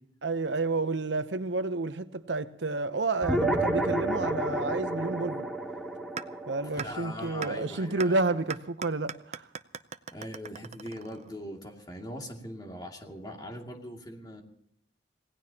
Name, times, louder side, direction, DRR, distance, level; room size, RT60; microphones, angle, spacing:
voice 1, 0.2-5.5 6.5-9.5, right 3 dB, 80° right, 0.9 m, -30 dB
sound 1, 3.2-8.0, right 1 dB, ahead, 2.0 m, -30 dB
sound 2, 6.2-6.3 6.8-6.9 7.4-7.5 8.0-8.1 8.5-11.4, right 6 dB, 40° right, 0.6 m, -38 dB
voice 2, 6.8-8.3 10.1-14.4, left 1 dB, 25° left, 2.5 m, -41 dB
27.0 x 18.0 x 2.9 m
head